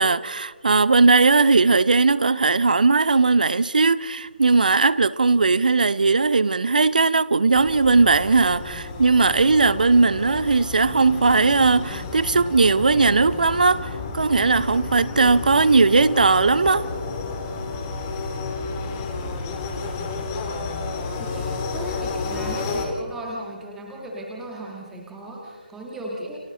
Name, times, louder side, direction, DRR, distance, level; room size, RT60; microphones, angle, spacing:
voice 1, 0.0-16.9, right 3 dB, 60° right, 0.9 m, -18 dB
sound 1, 7.5-22.9, left 3 dB, 20° left, 2.6 m, -31 dB
voice 2, 21.2-26.4, right 1 dB, 5° right, 1.9 m, -36 dB
30.0 x 25.0 x 3.9 m
figure-of-eight pair, 150°, 5 cm